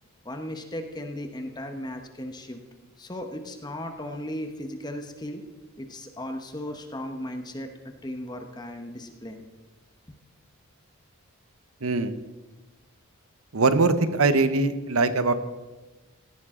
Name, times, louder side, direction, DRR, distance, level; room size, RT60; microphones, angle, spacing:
voice 1, 0.2-2.6 3.0-5.4 5.8-9.4, left 1 dB, 20° left, 5 dB, 1.1 m, -36 dB
voice 2, 11.8-12.1 13.5-15.3, right 3 dB, 75° right, 12 dB, 0.9 m, -22 dB
17.0 x 15.0 x 3.8 m, 1.2 s
head